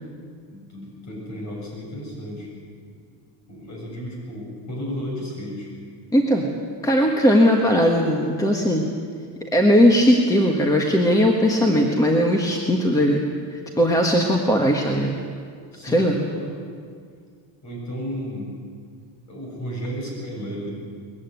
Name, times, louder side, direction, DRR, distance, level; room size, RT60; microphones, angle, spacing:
voice 1, 0.5-2.5 3.5-5.7 15.7-16.5 17.6-18.5 19.3-20.8, equal, 35° left, -2 dB, 7.7 m, -33 dB
voice 2, 6.1-6.5 6.8-8.8 9.5-13.2 13.5-15.2 15.8-16.2, equal, 5° left, 2 dB, 1.4 m, -18 dB
21.0 x 15.0 x 9.6 m, 2.1 s
cardioid pair, 160°, 48 cm